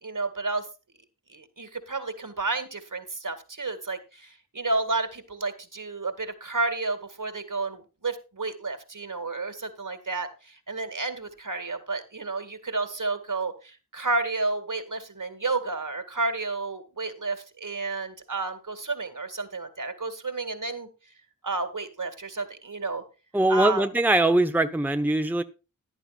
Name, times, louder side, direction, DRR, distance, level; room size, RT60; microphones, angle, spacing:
voice 1, 0.0-0.7 1.3-20.9 21.4-23.0 23.5-23.8, right 3 dB, 65° right, 9 dB, 2.1 m, -31 dB
voice 2, 23.3-25.4, right 2 dB, 5° right, 8 dB, 0.8 m, -22 dB
14.5 x 11.0 x 2.3 m, 0.30 s
wide cardioid pair, 50°, 33 cm